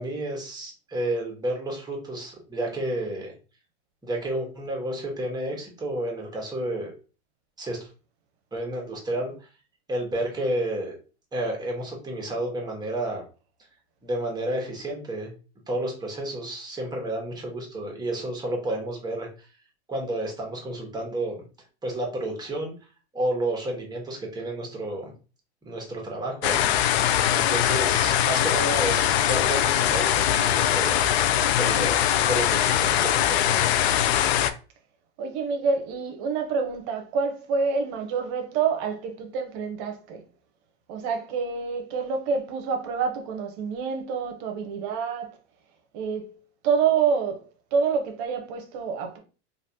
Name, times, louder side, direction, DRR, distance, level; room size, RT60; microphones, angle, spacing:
voice 1, 0.0-3.3 4.0-6.9 7.6-7.9 8.5-9.5 9.9-11.0 11.3-13.2 14.0-15.3 15.7-19.5 19.9-21.4 21.8-22.7 23.1-25.1 25.6-26.8 27.3-31.1 31.6-33.6, right 1 dB, 10° right, 1.2 m, -31 dB
sound 1, 26.4-34.5, left 11 dB, 65° left, 0.5 m, -22 dB
voice 2, 35.2-40.2 40.9-45.4 45.9-49.2, right 5 dB, 50° right, 0.9 m, -27 dB
3.2 x 2.5 x 2.8 m
hypercardioid pair, 100°, 34 cm